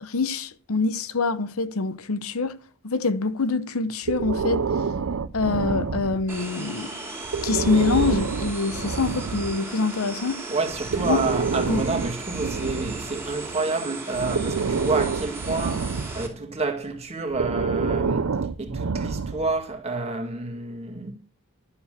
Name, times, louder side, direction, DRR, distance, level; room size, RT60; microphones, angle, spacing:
voice 1, 0.0-2.6 2.8-4.7 5.3-6.9 7.4-10.4 11.0-11.2 11.7-11.8, left 4 dB, 75° left, 0.8 m, -25 dB
Breathing, 4.1-6.5 7.2-9.6 10.7-13.5 14.1-16.4 17.3-19.6, right 5 dB, 75° right, 0.6 m, -28 dB
sound 1, 6.3-16.3, right 3 dB, 10° right, 2.6 m, -37 dB
voice 2, 10.5-18.3 18.6-21.1, right 3 dB, 30° right, 1.9 m, -29 dB
11.5 x 7.0 x 6.7 m
head